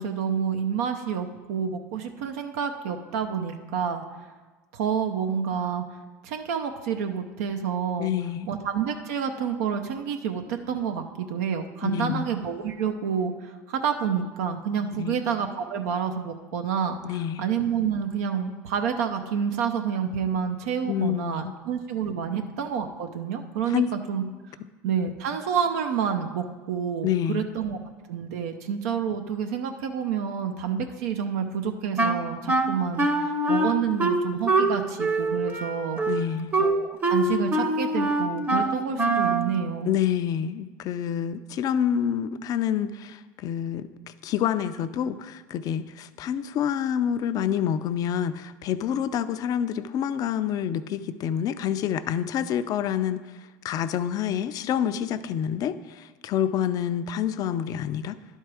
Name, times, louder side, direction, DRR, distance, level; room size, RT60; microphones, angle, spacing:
voice 1, 0.0-4.0 4.7-5.8 6.2-8.1 8.5-17.0 17.4-24.2 24.8-27.8 28.1-36.0 36.6-39.9, right 7 dB, 80° right, 6 dB, 0.6 m, -28 dB
voice 2, 8.0-8.5 11.8-12.3 15.0-15.2 17.0-17.4 20.9-21.5 22.4-22.5 23.7-23.9 27.0-27.4 36.1-36.5 39.9-43.9 44.2-53.2 53.6-58.2, left 9 dB, 50° left, 12 dB, 0.4 m, -27 dB
Wind instrument woodwind instrument, 32.0-39.5, right 2 dB, 25° right, 0.8 m, -24 dB
11.0 x 4.5 x 4.8 m, 1.3 s
hypercardioid pair, 90°, 8 cm